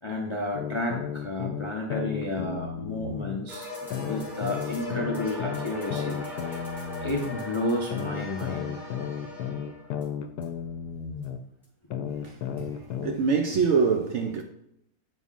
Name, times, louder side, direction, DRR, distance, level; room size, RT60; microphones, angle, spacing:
voice 1, 0.0-3.7 4.0-6.2 6.5-6.6 7.0-8.8, left 1 dB, 45° left, 0.4 m, -31 dB
sound 1, 0.5-3.4 3.9-7.4 7.9-11.4 11.9-13.2, left 8 dB, 90° left, 1.1 m, -33 dB
sound 2, 3.5-10.1 10.4-10.5 11.2-11.3 11.6-11.7, left 2 dB, ahead, 2.4 m, -39 dB
voice 2, 12.1-14.4, right 5 dB, 65° right, 0.7 m, -26 dB
8.1 x 5.4 x 2.4 m
omnidirectional pair, 1.7 m